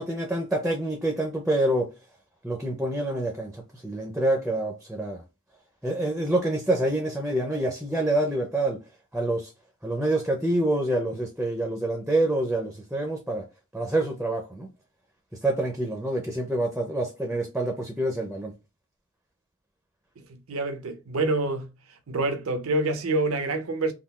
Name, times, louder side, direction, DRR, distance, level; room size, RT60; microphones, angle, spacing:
voice 1, 0.0-1.9 2.4-5.2 5.8-8.8 9.1-9.5 9.8-13.5 13.7-14.7 15.4-18.5, right 1 dB, 5° right, 0.4 m, -27 dB
voice 2, 20.3-21.7 22.1-23.9, right 2 dB, 85° right, 0.6 m, -27 dB
3.6 x 2.3 x 2.3 m
head